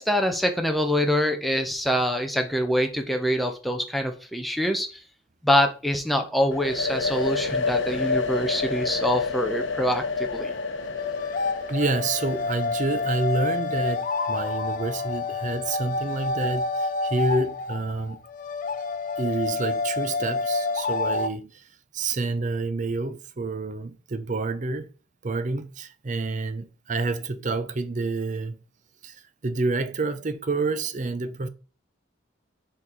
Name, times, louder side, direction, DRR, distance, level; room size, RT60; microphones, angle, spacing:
voice 1, 0.0-5.0 5.4-10.5, equal, ahead, 0.8 m, -25 dB
sound 1, 6.5-14.2, left 4 dB, 70° left, 0.9 m, -29 dB
sound 2, 10.3-21.3, left 3 dB, 40° left, 0.4 m, -29 dB
voice 2, 11.7-18.2 19.2-24.9 25.2-28.6 29.0-31.5, right 3 dB, 40° right, 0.6 m, -28 dB
6.2 x 3.9 x 4.5 m
head